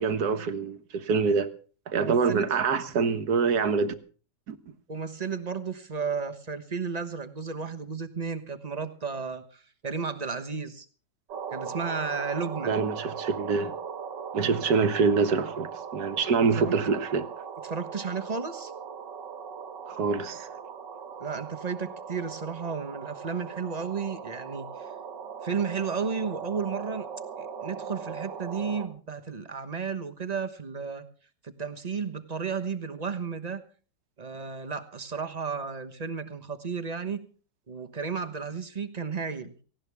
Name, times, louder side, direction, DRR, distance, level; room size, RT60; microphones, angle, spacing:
voice 1, 0.0-1.5 1.9-3.9 4.5-4.6 12.7-13.7 14.3-17.2 19.9-20.5, right 5 dB, 60° right, 1.7 m, -25 dB
voice 2, 1.9-2.5 4.9-10.9 11.5-12.8 16.6-16.7 17.6-18.7 21.2-24.9 25.4-27.0 27.4-31.0 31.4-33.6 34.2-37.3 37.7-39.5, right 5 dB, 25° right, 1.1 m, -33 dB
sound 1, 11.3-28.9, right 6 dB, 80° right, 2.2 m, -39 dB
18.5 x 17.0 x 3.5 m
omnidirectional pair, 1.9 m